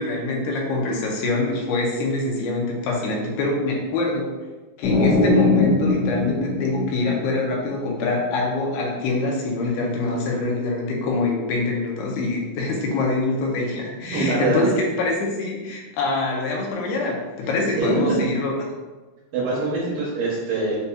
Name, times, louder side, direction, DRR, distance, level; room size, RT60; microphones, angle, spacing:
voice 1, 0.0-4.3 4.8-18.5, left 2 dB, 85° left, -1 dB, 2.7 m, -24 dB
sound 1, 4.8-7.6, left 2 dB, 70° left, 1.7 m, -21 dB
voice 2, 14.1-14.7 17.8-18.1 19.3-20.8, right 2 dB, 75° right, -8 dB, 2.5 m, -23 dB
6.7 x 2.7 x 2.3 m, 1.2 s
omnidirectional pair, 4.4 m